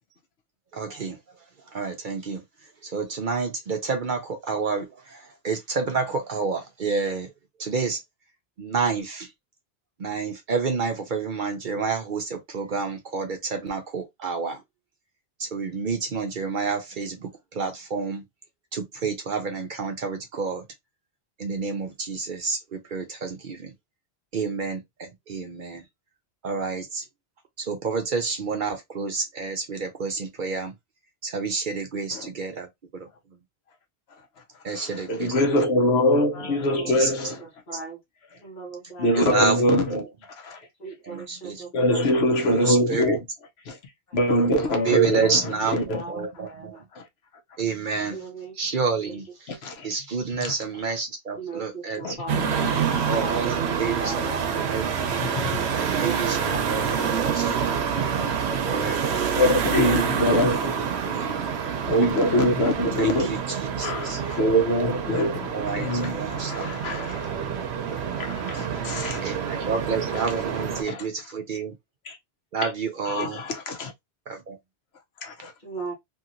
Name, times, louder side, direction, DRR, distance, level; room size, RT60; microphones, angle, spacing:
voice 1, 0.7-1.2 1.7-2.4 2.8-7.3 7.6-8.0 8.6-9.3 10.0-14.6 15.4-18.2 18.7-20.6 21.4-23.7 24.3-25.8 26.4-27.0 27.6-30.7 31.2-33.1 34.6-35.3 36.9-37.1 39.2-39.6 39.9-40.1 41.0-41.6 42.4-43.2 44.8-46.8 47.6-48.3 48.6-49.5 49.8-52.0 53.1-54.9 55.8-57.9 58.7-59.5 59.8-60.0 61.1-61.4 63.0-63.4 63.8-64.2 65.5-66.7 69.2-71.7 72.5-73.4 74.3-74.6, right 5 dB, 55° right, 0.7 m, -29 dB
voice 2, 34.7-37.4 39.0-40.0 40.4-40.6 41.7-43.2 43.7-43.8 44.1-46.0 46.9-47.0 49.5-49.9 50.4-50.5 52.0-53.1 55.2-55.8 57.7-57.8 58.2-58.3 59.3-61.1 61.9-67.3 67.9-69.6 70.1-70.3 70.5-71.1 72.0-72.2 72.6-72.7 73.0-73.9 75.2-75.5, equal, 70° left, 1.0 m, -24 dB
voice 3, 36.3-37.0 37.7-38.0 38.4-39.2 40.8-42.0 44.1-44.2 44.7-44.9 45.2-45.3 45.9-46.8 48.0-48.5 51.4-52.7 53.1-54.6 55.5-57.4 58.7-59.4 75.6-75.9, right 4 dB, 45° left, 1.4 m, -38 dB
sound 1, 52.3-70.8, right 7 dB, 75° right, 0.9 m, -27 dB
2.8 x 2.8 x 2.5 m
omnidirectional pair, 1.1 m